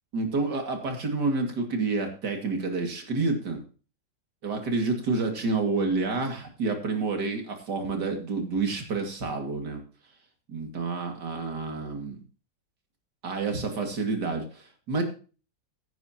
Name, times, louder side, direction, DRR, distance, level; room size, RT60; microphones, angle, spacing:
voice 1, 0.1-3.6 4.4-9.8 10.5-12.2 13.2-15.0, right 3 dB, 65° right, 4 dB, 2.9 m, -29 dB
15.5 x 9.9 x 2.9 m, 0.36 s
omnidirectional pair, 1.9 m